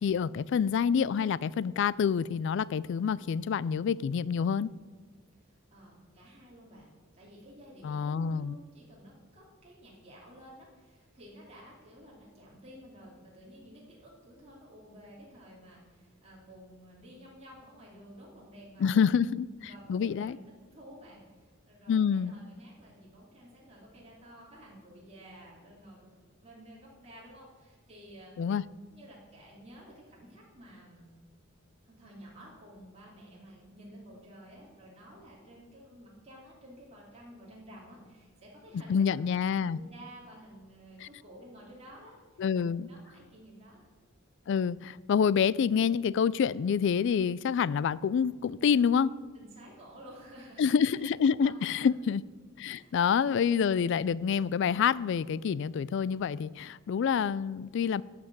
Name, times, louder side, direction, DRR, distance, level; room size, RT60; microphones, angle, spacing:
voice 1, 0.0-4.7 7.8-8.5 18.8-19.5 19.9-20.4 21.9-22.3 28.4-28.6 38.9-39.8 41.0-41.1 42.4-42.9 44.5-49.1 50.6-52.2 52.6-58.0, left 7 dB, 60° left, 0.3 m, -27 dB
voice 2, 5.4-19.1 19.6-26.1 26.4-28.3 28.9-31.1 31.9-43.9 49.3-51.9 52.7-53.0, equal, 30° right, 2.6 m, -52 dB
11.5 x 5.9 x 7.7 m
head